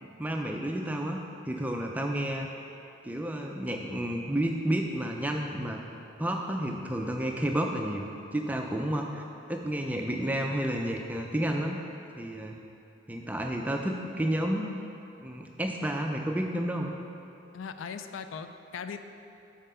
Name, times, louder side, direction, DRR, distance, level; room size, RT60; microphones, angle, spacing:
voice 1, 0.0-2.5 3.0-5.8 6.2-9.2 9.5-11.8 12.2-12.6 13.1-14.7 15.2-16.9, right 1 dB, 10° right, 2 dB, 0.3 m, -31 dB
voice 2, 17.5-19.0, left 6 dB, 80° left, 9 dB, 0.3 m, -39 dB
5.5 x 5.0 x 5.4 m, 2.7 s
head